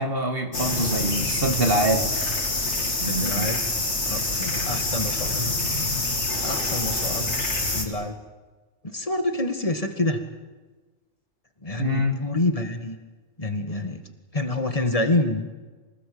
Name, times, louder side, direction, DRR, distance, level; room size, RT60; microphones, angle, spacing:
voice 1, 0.0-2.2 3.0-3.5 11.8-12.3, right 1 dB, 45° right, 4 dB, 2.0 m, -25 dB
sound 1, 0.5-7.8, left 2 dB, 60° left, 3.1 m, -26 dB
voice 2, 3.1-3.6 4.1-5.5 6.4-7.3 7.6-8.2 8.8-10.2 11.6-13.0 13.4-14.0 14.3-15.5, left 2 dB, 25° left, 6 dB, 1.9 m, -27 dB
25.5 x 19.0 x 8.7 m, 1.3 s
omnidirectional pair, 1.3 m